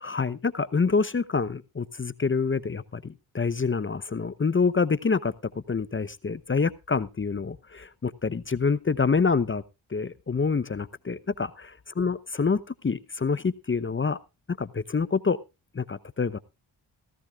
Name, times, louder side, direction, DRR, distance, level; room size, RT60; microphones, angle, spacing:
voice 1, 0.0-5.3 5.7-9.6 9.9-14.2 14.6-15.4 15.7-16.4, left 5 dB, 25° left, 16 dB, 0.8 m, -27 dB
16.0 x 15.0 x 2.4 m, 0.26 s
supercardioid pair, 50°, 46 cm